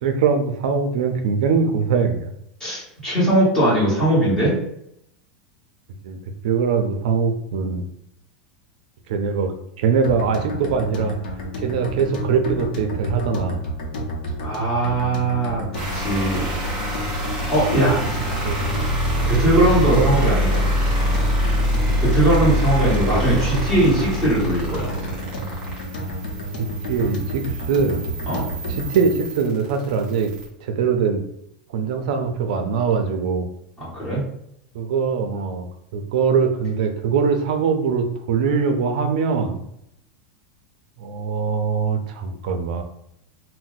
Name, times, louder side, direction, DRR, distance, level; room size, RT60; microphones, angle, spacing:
voice 1, 0.0-2.3 6.0-6.2 6.4-7.8 9.1-11.2 11.6-13.6 17.3-17.5 17.9-18.1 18.4-18.8 19.6-20.2 26.6-28.1 28.7-30.3 30.6-31.2 31.7-33.5 34.7-39.6 41.0-42.8, right 5 dB, 60° right, 6 dB, 0.4 m, -22 dB
voice 2, 2.6-4.5 14.4-15.6 15.9-16.5 17.5-18.0 19.3-20.7 22.0-24.9 28.3-28.5 33.8-34.3, right 1 dB, 15° left, -9 dB, 1.4 m, -20 dB
sound 1, 10.0-29.2, equal, 80° left, 0.7 m, -30 dB
sound 2, 15.7-30.5, equal, 20° right, 1.3 m, -25 dB
2.6 x 2.1 x 3.9 m, 0.76 s
supercardioid pair, 175°, 5 cm